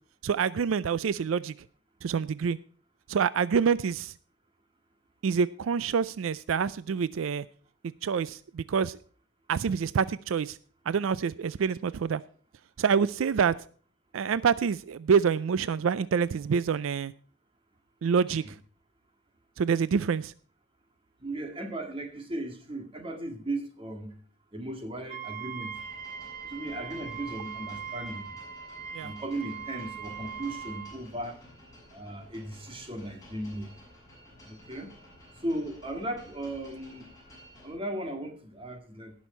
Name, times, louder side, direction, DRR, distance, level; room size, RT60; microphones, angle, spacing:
voice 1, 0.2-1.5 2.0-2.6 3.1-4.1 5.2-7.5 8.0-9.0 9.5-10.6 10.9-12.2 12.8-13.5 14.1-17.1 18.0-18.4 19.6-20.3 28.9-29.1, right 6 dB, 85° right, 0.4 m, -26 dB
voice 2, 21.2-24.1 24.5-25.7 26.5-28.3 29.0-31.4 31.9-33.7 34.4-34.9 35.4-37.1 37.6-39.1, right 1 dB, 25° right, 1.9 m, -36 dB
Wind instrument woodwind instrument, 25.1-31.0, right 7 dB, 45° right, 0.9 m, -40 dB
sound 1, 25.7-37.7, equal, 20° left, 6.3 m, -53 dB
18.0 x 6.3 x 4.3 m
head